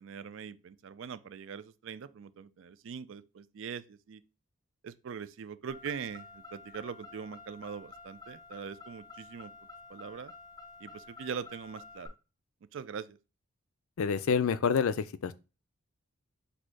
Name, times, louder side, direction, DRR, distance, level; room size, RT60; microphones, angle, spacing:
voice 1, 0.0-4.2 4.8-9.5 9.9-10.3 10.8-12.1 12.7-13.2, right 6 dB, 60° right, 0.4 m, -42 dB
Car, 5.7-12.1, left 3 dB, 20° left, 0.7 m, -50 dB
voice 2, 14.0-15.3, left 6 dB, 75° left, 0.4 m, -28 dB
4.2 x 2.7 x 4.6 m
head